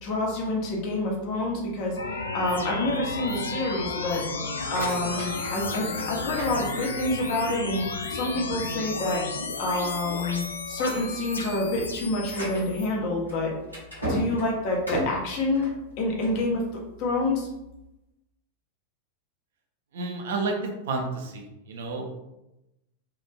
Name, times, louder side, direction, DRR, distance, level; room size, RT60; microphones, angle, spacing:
voice 1, 0.0-2.0 2.3-4.2 4.7-7.8 8.1-9.2 9.6-13.5 14.1-15.7 16.0-16.6 17.0-17.5, left 2 dB, 45° left, -1 dB, 0.7 m, -27 dB
sound 1, 2.0-12.9, left 3 dB, 70° left, 0.3 m, -33 dB
sound 2, 4.4-7.2 7.7-8.2 8.7-8.8 9.2-9.3 10.0-10.3 10.6-16.5, equal, 90° right, 1.0 m, -36 dB
voice 2, 19.9-20.6 20.9-22.1, right 3 dB, 60° right, 2 dB, 0.5 m, -30 dB
2.9 x 2.5 x 2.2 m, 0.91 s
figure-of-eight pair, 90°, 0 cm